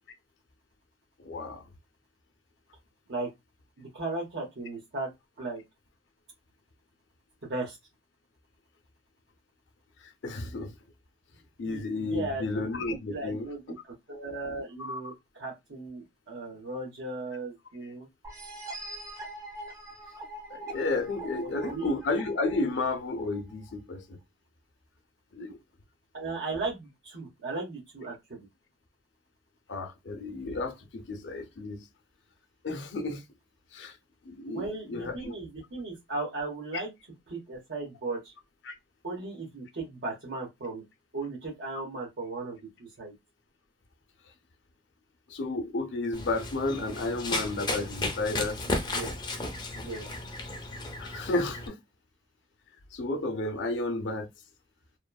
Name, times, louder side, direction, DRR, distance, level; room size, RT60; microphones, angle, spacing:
voice 1, 1.2-1.6 10.0-10.7 11.6-13.5 14.8-15.1 20.5-24.2 25.3-25.6 29.7-31.8 32.6-33.2 33.7-34.0 34.2-35.3 38.7-38.8 45.3-48.6 51.0-51.8 52.9-54.3, left 2 dB, 75° left, 0.6 m, -32 dB
voice 2, 3.8-5.1 5.4-5.6 7.4-7.8 11.6-13.6 14.1-18.1 21.4-21.9 26.1-28.5 34.5-36.9 37.3-38.3 39.0-40.8 41.1-43.1 48.7-49.1 49.8-50.1, right 3 dB, 70° right, 1.0 m, -36 dB
sound 1, 18.2-23.7, right 2 dB, 20° right, 0.6 m, -43 dB
Run, 46.1-51.7, left 2 dB, 25° left, 0.4 m, -34 dB
3.0 x 2.0 x 2.2 m
head